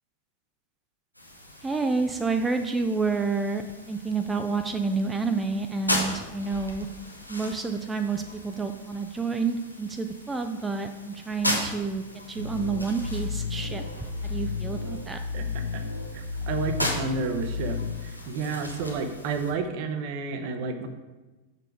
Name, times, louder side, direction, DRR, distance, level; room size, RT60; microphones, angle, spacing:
sound 1, 1.1-19.5, left 1 dB, 90° left, 0.9 m, -37 dB
voice 1, 1.6-6.9 7.3-13.8 14.2-15.2, right 4 dB, 10° right, 6 dB, 0.4 m, -29 dB
sound 2, 12.4-17.9, left 5 dB, 85° right, 1.0 m, -33 dB
voice 2, 16.1-17.8 18.0-20.9, right 4 dB, 45° right, 7 dB, 0.7 m, -31 dB
6.5 x 4.0 x 4.7 m, 1.2 s
figure-of-eight pair, 90°, 0 cm